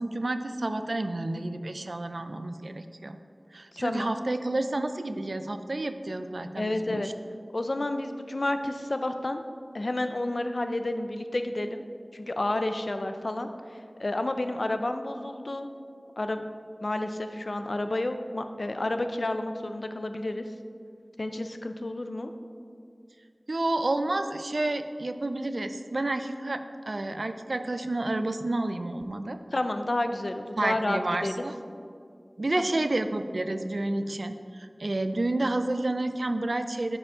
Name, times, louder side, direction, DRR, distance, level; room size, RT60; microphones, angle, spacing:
voice 1, 0.0-3.2 3.5-7.1 23.5-29.4 30.6-31.5 32.4-37.0, right 2 dB, 85° right, 9 dB, 0.4 m, -30 dB
voice 2, 3.7-4.1 6.6-7.1 7.5-9.4 9.7-11.8 12.1-15.7 16.2-16.4 16.8-20.4 21.2-22.3 29.5-31.4 32.5-32.6, left 2 dB, 75° left, 8 dB, 0.4 m, -30 dB
9.7 x 4.9 x 3.6 m, 2.3 s
wide cardioid pair, 40°, 0 cm